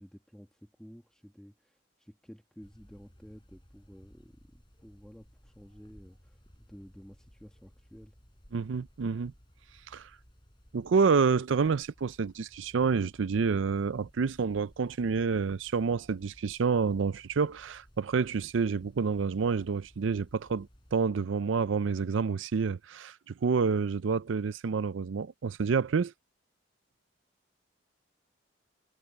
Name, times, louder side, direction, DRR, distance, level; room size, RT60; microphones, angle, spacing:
voice 1, 0.0-8.1, equal, 5° left, 1.7 m, -52 dB
sound 1, 2.6-20.9, equal, 25° left, 6.9 m, -59 dB
voice 2, 8.5-9.3 9.9-10.1 10.7-26.1, right 5 dB, 75° right, 0.4 m, -28 dB
head